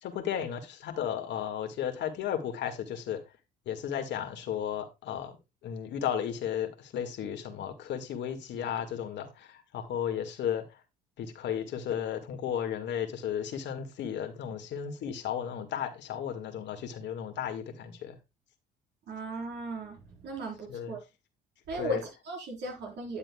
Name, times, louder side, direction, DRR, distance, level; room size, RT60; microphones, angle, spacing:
voice 1, 0.0-3.2 3.7-5.4 5.6-10.6 11.2-18.2 20.7-20.9 21.8-22.0, left 9 dB, 65° left, 1.9 m, -34 dB
voice 2, 19.1-21.0 21.7-23.2, right 1 dB, 60° right, 4.3 m, -37 dB
9.9 x 8.8 x 2.3 m
hypercardioid pair, 70°, 20 cm